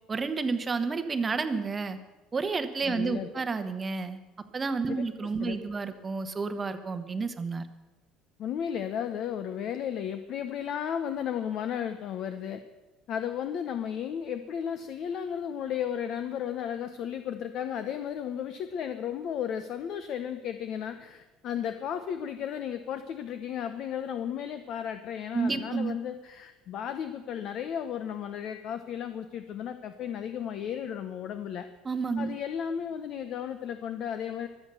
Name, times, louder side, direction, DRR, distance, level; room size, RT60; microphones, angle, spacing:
voice 1, 0.1-2.0 2.3-4.2 4.5-7.7 25.3-26.0 31.8-32.4, right 4 dB, 20° right, 10 dB, 1.0 m, -30 dB
voice 2, 2.9-3.3 4.9-5.1 5.4-5.6 8.4-12.6 13.1-31.7 32.2-34.5, left 8 dB, 45° left, 10 dB, 0.9 m, -34 dB
23.5 x 8.2 x 6.9 m, 1.2 s
cardioid pair, 165°, 0 cm